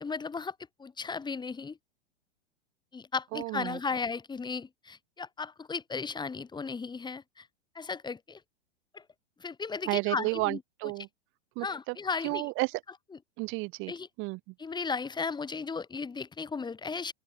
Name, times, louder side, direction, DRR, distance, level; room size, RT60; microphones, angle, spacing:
voice 1, 0.0-1.8 2.9-7.5 7.7-8.4 8.9-9.0 9.4-10.6 11.6-12.5 13.1-13.2 13.9-14.1 14.6-17.1, left 5 dB, 15° left, 4.2 m, -35 dB
voice 2, 3.3-3.8 9.9-11.1 11.6-11.9 12.2-12.8 13.4-13.9 14.2-14.4, right 25 dB, 35° right, 1.6 m, -32 dB
open air
figure-of-eight pair, 100°, 34 cm